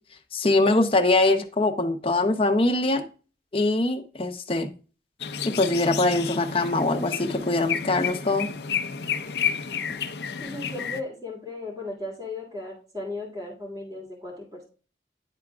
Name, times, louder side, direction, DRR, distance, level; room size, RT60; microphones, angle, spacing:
voice 1, 0.3-3.0 3.5-4.7 5.4-8.5, left 2 dB, 30° left, 6 dB, 0.7 m, -23 dB
sound 1, 5.2-11.0, left 7 dB, 70° left, 0.5 m, -31 dB
voice 2, 10.4-14.6, left 2 dB, 20° right, -1 dB, 2.2 m, -36 dB
9.9 x 3.6 x 3.5 m, 0.37 s
head